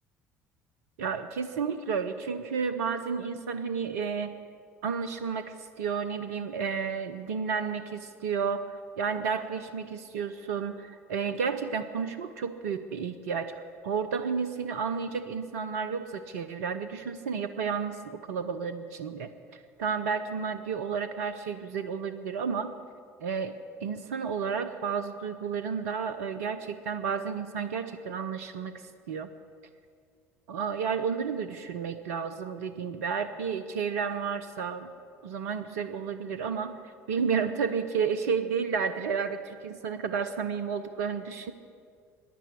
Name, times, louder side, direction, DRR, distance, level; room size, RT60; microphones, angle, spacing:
voice 1, 1.0-4.4 4.8-5.4 5.8-8.7 9.0-13.5 13.8-22.7 23.2-28.7 29.1-29.3 30.5-34.9 35.2-36.7 37.1-41.5, right 6 dB, 75° right, 10 dB, 0.7 m, -31 dB
15.5 x 10.5 x 8.4 m, 2.1 s
figure-of-eight pair, 60°, 8 cm